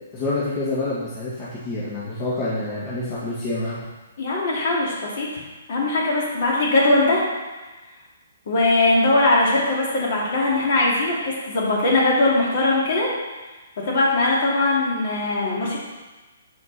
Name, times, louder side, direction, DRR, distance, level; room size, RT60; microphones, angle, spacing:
voice 1, 0.1-3.8, left 2 dB, 30° left, -9 dB, 1.7 m, -27 dB
voice 2, 4.2-5.3 5.7-7.2 8.5-13.1 13.8-15.8, left 2 dB, 55° left, -4 dB, 2.6 m, -20 dB
7.5 x 5.2 x 4.1 m, 1.2 s
hypercardioid pair, 135°, 0 cm